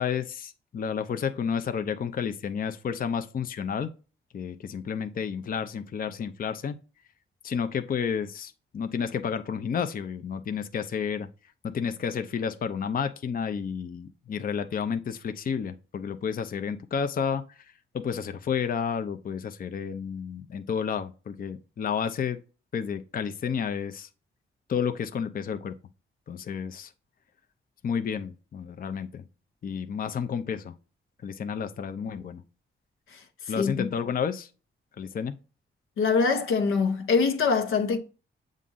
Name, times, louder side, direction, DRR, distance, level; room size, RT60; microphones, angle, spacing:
voice 1, 0.0-3.9 4.3-6.8 7.4-11.3 11.6-17.7 17.9-22.4 22.7-24.1 24.7-25.8 26.3-26.9 27.8-29.2 29.6-30.7 31.2-32.4 33.5-34.5 35.0-35.4, left 7 dB, 45° left, 0.5 m, -31 dB
voice 2, 36.0-38.0, left 5 dB, 90° left, 0.9 m, -23 dB
7.3 x 2.5 x 5.4 m
cardioid pair, 85°, 21 cm